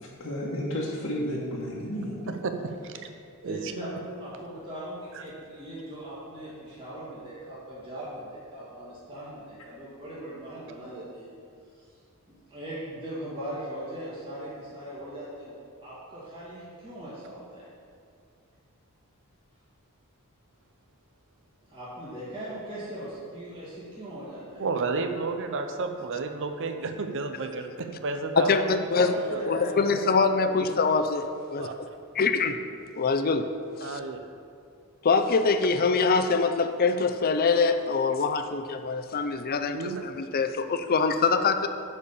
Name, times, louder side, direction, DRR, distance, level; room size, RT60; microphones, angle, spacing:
voice 1, 0.0-2.3, equal, 70° left, -5 dB, 1.2 m, -32 dB
voice 2, 2.4-2.9 3.4-3.7 5.1-5.2 24.6-29.6 31.6-31.7 33.8-34.2 39.7-40.0, right 3 dB, 60° right, 6 dB, 0.6 m, -32 dB
voice 3, 3.4-11.3 11.7-11.9 12.3-17.6 21.7-24.6 28.9-30.0 30.4-30.6, right 1 dB, 25° right, -10 dB, 2.1 m, -39 dB
voice 4, 28.4-29.1 29.5-31.2 31.5-31.7 32.2-32.5 33.0-33.5 33.8-34.0 35.0-39.8 40.0-41.7, left 4 dB, 40° left, 9 dB, 0.5 m, -24 dB
9.8 x 4.3 x 7.0 m, 2.3 s
head